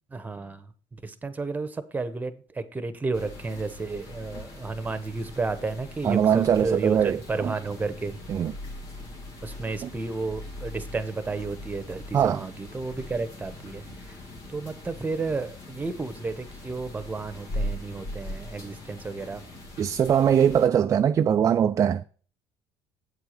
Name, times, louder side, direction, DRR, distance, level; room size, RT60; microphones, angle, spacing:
voice 1, 0.1-0.6 1.0-7.0 7.3-8.2 9.4-13.8 14.5-19.4, right 3 dB, 15° right, 1.0 m, -32 dB
sound 1, 3.1-20.7, left 1 dB, 60° left, 2.3 m, -40 dB
voice 2, 6.0-7.5 8.3-8.5 9.8-9.9 12.1-12.4 19.8-22.0, right 8 dB, 35° right, 0.3 m, -22 dB
8.1 x 4.6 x 6.6 m
supercardioid pair, 100°, 10 cm